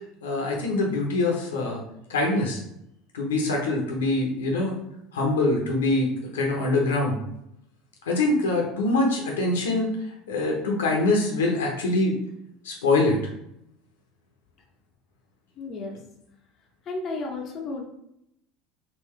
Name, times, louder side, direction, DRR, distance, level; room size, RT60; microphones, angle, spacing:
voice 1, 0.2-1.8 2.1-2.6 3.1-4.8 5.1-7.2 8.0-12.1 12.6-13.2, left 2 dB, 75° left, 0 dB, 0.8 m, -24 dB
voice 2, 15.6-16.0 16.9-17.8, left 3 dB, 40° left, 0 dB, 0.7 m, -33 dB
3.7 x 2.7 x 3.2 m, 0.78 s
figure-of-eight pair, 70°, 0 cm